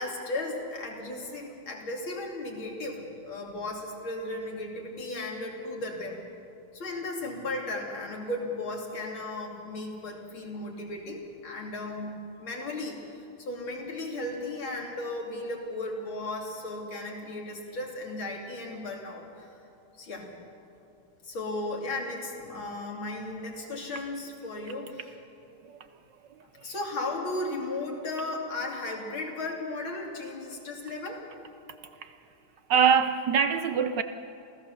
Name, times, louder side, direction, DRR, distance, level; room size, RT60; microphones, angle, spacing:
voice 1, 0.0-6.2 6.7-13.0 13.4-19.5 20.0-20.3 21.2-25.0 26.6-31.2, left 2 dB, 70° left, 0 dB, 3.6 m, -35 dB
voice 2, 31.8-32.2 32.7-34.0, right 7 dB, 65° right, 10 dB, 1.2 m, -24 dB
27.0 x 16.0 x 6.9 m, 2.6 s
omnidirectional pair, 2.3 m